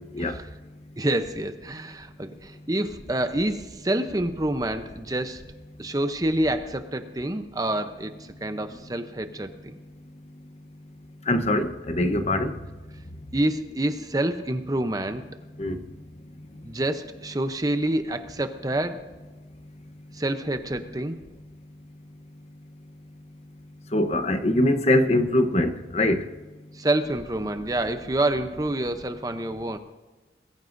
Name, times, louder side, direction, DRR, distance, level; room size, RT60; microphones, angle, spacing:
voice 1, 1.0-5.4 5.8-9.7 13.3-15.2 16.6-19.1 20.1-21.2 26.7-29.8, right 1 dB, 20° right, 0.7 m, -27 dB
voice 2, 11.3-12.5 15.6-15.8 23.9-26.2, left 1 dB, 35° left, 0.9 m, -22 dB
21.5 x 14.5 x 2.6 m
head